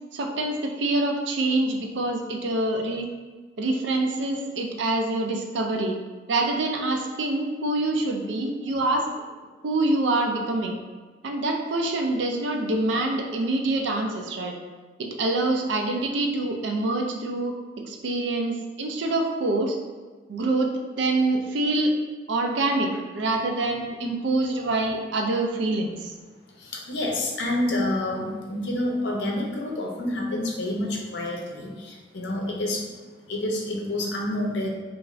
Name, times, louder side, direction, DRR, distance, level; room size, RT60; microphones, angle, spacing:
voice 1, 0.1-3.1 3.6-6.0 6.3-9.1 9.6-10.8 11.2-14.5 15.0-19.8 20.3-21.9 22.3-26.1, right 2 dB, 75° right, 2 dB, 0.4 m, -25 dB
voice 2, 26.6-33.0 33.3-34.7, left 1 dB, 75° left, -1 dB, 0.6 m, -28 dB
2.4 x 2.4 x 3.0 m, 1.4 s
head